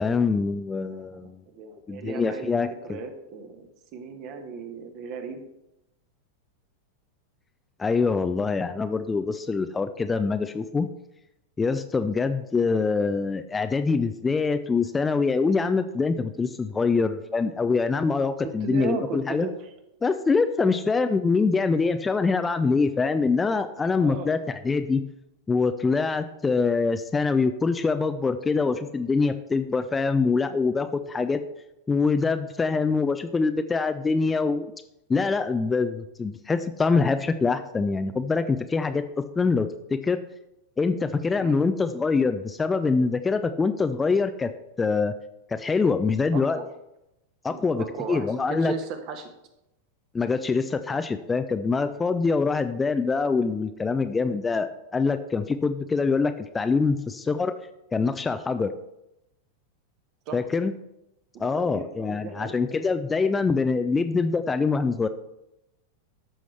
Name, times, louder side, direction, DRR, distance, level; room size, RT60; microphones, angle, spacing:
voice 1, 0.0-1.3 1.9-2.7 7.8-10.9 11.6-19.5 20.0-25.0 25.5-31.4 31.9-34.7 35.1-40.2 40.8-44.5 44.8-45.1 45.5-46.6 47.4-48.7 50.1-57.5 57.9-58.7 60.3-60.7 61.4-65.1, left 4 dB, 15° left, 9 dB, 0.5 m, -24 dB
voice 2, 0.9-2.5 2.8-5.4 18.4-19.5 20.6-20.7 24.0-24.3 41.3-41.6 46.3-46.7 47.4-49.3 60.3-60.4 61.3-62.8, right 5 dB, 40° right, 6 dB, 1.3 m, -36 dB
13.5 x 6.2 x 3.3 m, 0.88 s
figure-of-eight pair, 90°, 0 cm